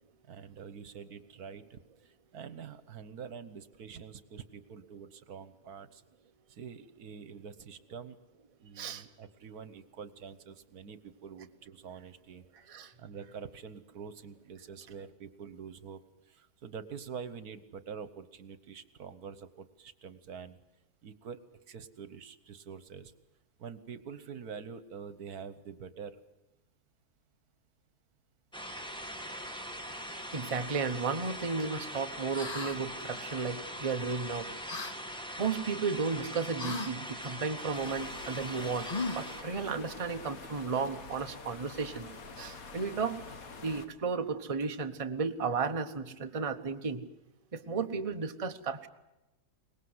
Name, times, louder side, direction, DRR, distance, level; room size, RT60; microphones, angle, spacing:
voice 1, 0.3-6.0 6.5-8.2 8.6-16.0 16.3-20.6 21.0-21.4 21.7-23.1 23.6-26.2, right 6 dB, 75° right, 14 dB, 1.6 m, -46 dB
voice 2, 8.7-9.1 12.7-12.9 30.2-34.5 35.4-43.2 43.6-47.0 47.5-48.9, right 5 dB, 25° right, 7 dB, 1.1 m, -34 dB
sound 1, 28.5-39.4, equal, 5° left, 2.1 m, -42 dB
sound 2, 32.3-32.8 34.7-35.0 36.6-36.9 38.9-39.4, left 3 dB, 30° left, 0.9 m, -36 dB
sound 3, 37.7-43.9, left 4 dB, 65° left, 2.1 m, -46 dB
23.5 x 20.0 x 8.0 m, 0.97 s
omnidirectional pair, 1.6 m